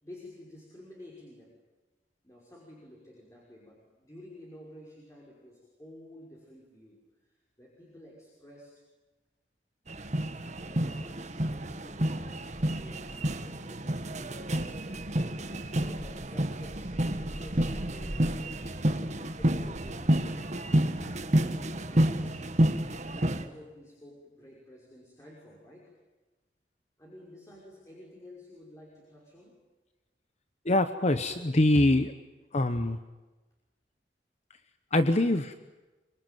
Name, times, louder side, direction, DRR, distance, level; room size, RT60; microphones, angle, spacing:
voice 1, 0.0-1.5 2.2-8.8 10.6-18.4 18.9-22.4 23.0-25.9 27.0-29.6, left 1 dB, 15° left, -3 dB, 5.8 m, -51 dB
sound 1, 9.9-23.4, right 1 dB, 40° right, 1.6 m, -29 dB
voice 2, 30.6-32.1 32.5-33.0 34.9-35.5, left 1 dB, 40° left, 10 dB, 1.0 m, -24 dB
25.5 x 24.5 x 9.3 m, 1.2 s
head